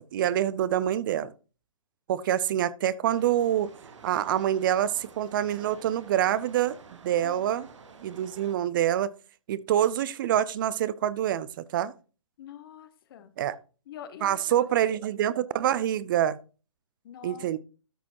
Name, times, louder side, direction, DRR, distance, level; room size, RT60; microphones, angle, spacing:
voice 1, 0.1-1.3 2.1-3.7 4.0-6.8 7.0-7.7 8.0-9.1 9.5-11.9 13.4-13.6 14.2-16.4 17.2-17.6, right 11 dB, 40° right, 0.5 m, -26 dB
sound 1, 3.1-8.5, right 5 dB, 65° right, 1.5 m, -50 dB
voice 2, 7.2-7.6 12.4-13.3 13.9-15.0 17.0-17.6, left 9 dB, 45° left, 1.0 m, -46 dB
13.0 x 6.0 x 2.9 m
figure-of-eight pair, 130°, 16 cm